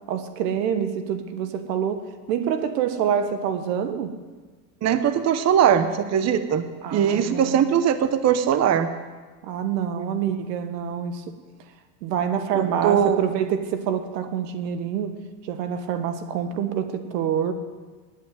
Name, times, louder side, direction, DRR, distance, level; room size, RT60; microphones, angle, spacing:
voice 1, 0.1-2.0 2.3-4.1 6.8-7.5 9.4-11.2 12.0-15.2 15.5-17.5, right 8 dB, 80° right, 9 dB, 1.5 m, -26 dB
voice 2, 4.8-6.6 6.9-8.9 10.0-10.1 12.5-13.2, right 8 dB, 35° right, 10 dB, 0.9 m, -20 dB
10.0 x 9.0 x 9.3 m, 1.4 s
supercardioid pair, 100°, 48 cm